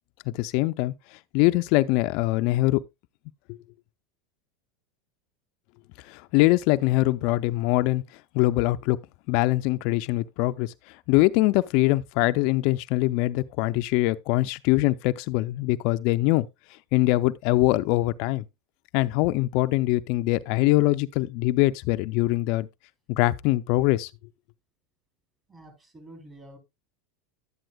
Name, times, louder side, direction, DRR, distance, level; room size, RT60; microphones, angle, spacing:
voice 1, 0.3-2.8 3.5-3.6 6.0-8.0 8.3-9.0 9.3-16.5 16.9-18.4 18.9-22.7 23.1-24.1, left 19 dB, 60° left, 0.4 m, -23 dB
voice 2, 25.5-26.6, right 1 dB, 20° right, 3.9 m, -48 dB
11.0 x 9.1 x 2.3 m
supercardioid pair, 125°, 0 cm